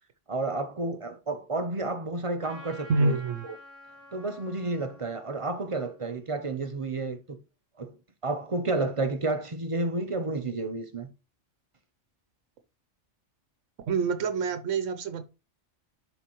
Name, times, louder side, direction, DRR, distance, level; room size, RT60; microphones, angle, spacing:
voice 1, 0.3-3.2 3.4-3.5 4.1-7.4 7.8-8.0 8.2-11.1, right 2 dB, 35° right, 0.6 m, -31 dB
Trumpet, 2.4-7.1, left 1 dB, 55° left, 3.1 m, -51 dB
voice 2, 2.9-3.4 13.9-15.3, right 4 dB, 90° right, 1.1 m, -26 dB
11.0 x 3.9 x 3.0 m
omnidirectional pair, 1.3 m